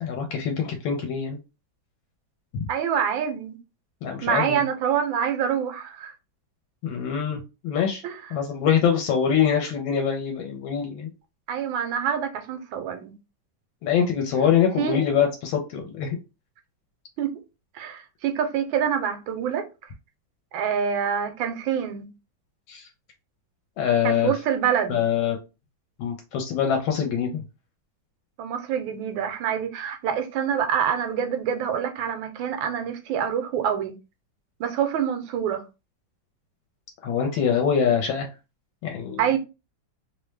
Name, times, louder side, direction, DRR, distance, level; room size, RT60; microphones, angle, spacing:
voice 1, 0.0-1.4 2.5-2.7 4.0-4.6 6.8-8.0 8.3-11.1 13.8-16.2 22.7-22.9 23.8-24.3 24.9-25.4 26.0-27.4 37.0-38.3 38.8-39.2, left 7 dB, 85° left, 1.4 m, -24 dB
voice 2, 2.7-3.6 4.2-6.1 8.0-8.2 11.5-13.1 14.8-15.0 17.2-17.4 17.7-19.7 20.5-22.1 24.0-25.0 28.4-33.9 34.6-35.6 39.2-39.4, right 8 dB, 90° right, 1.4 m, -26 dB
3.3 x 2.1 x 3.1 m
omnidirectional pair, 2.1 m